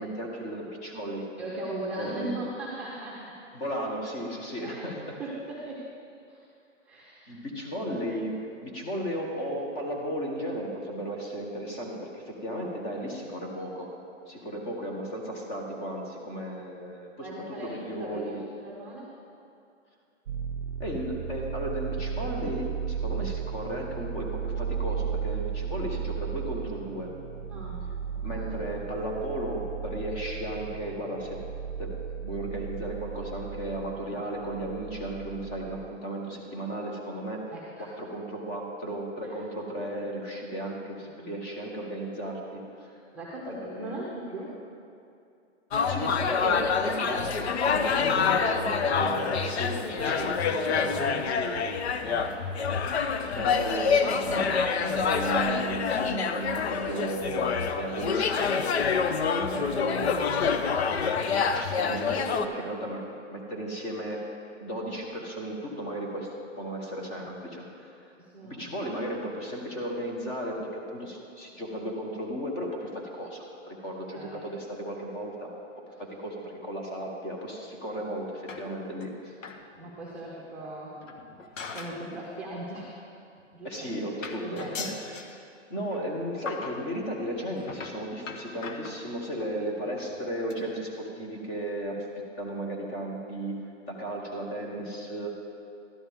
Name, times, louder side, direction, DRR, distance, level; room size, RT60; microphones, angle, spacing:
voice 1, 0.0-1.2 2.0-2.4 3.5-5.1 7.3-8.4 8.6-13.9 14.3-17.3 17.6-18.4 20.8-27.1 28.1-31.4 31.8-43.0 43.5-44.0 45.9-51.6 53.3-58.6 59.3-60.6 61.5-64.2 64.6-66.3 66.6-68.1 68.4-75.5 76.0-79.3 83.6-85.2 85.7-93.6 93.9-95.3, right 1 dB, 20° left, 0 dB, 1.1 m, -35 dB
voice 2, 1.4-3.4 4.6-4.9 5.2-5.9 6.3-6.4 6.8-7.4 7.7-7.8 14.3-14.8 17.2-19.1 27.5-28.5 37.5-37.9 39.2-39.3 41.1-41.4 43.1-44.6 51.9-52.4 52.9-53.4 59.4-59.6 68.2-68.6 73.8-74.5 79.7-81.4 81.6-83.0 83.5-83.7 84.4-84.9, right 1 dB, 5° right, -7 dB, 0.9 m, -40 dB
sound 1, 20.3-35.9, right 7 dB, 65° right, 0.6 m, -35 dB
sound 2, 45.7-62.5, left 5 dB, 60° left, 0.7 m, -27 dB
sound 3, 78.5-79.1 79.4-79.7 80.0-80.1 81.0-82.1 82.4-82.6 83.4-83.5 83.7-83.9 84.2-85.4 85.9-86.1 86.5-86.9 87.6-89.4 90.0-90.2 90.5-90.6 90.9-91.0 91.2-91.3, left 5 dB, 80° left, 1.1 m, -40 dB
12.5 x 11.0 x 3.5 m, 2.5 s
hypercardioid pair, 160°, 38 cm